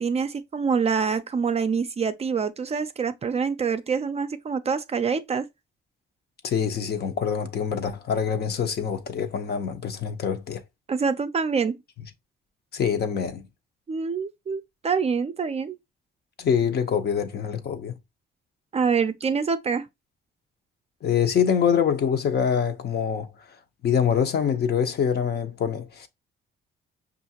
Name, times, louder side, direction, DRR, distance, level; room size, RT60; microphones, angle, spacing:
voice 1, 0.0-5.5 10.9-11.8 13.9-15.8 18.7-19.9, right 5 dB, 30° right, 0.4 m, -26 dB
voice 2, 6.4-10.6 12.7-13.5 16.4-18.0 21.0-23.3 23.8-26.1, left 7 dB, 55° left, 0.8 m, -25 dB
5.5 x 2.5 x 2.7 m
cardioid pair, 90°, 20 cm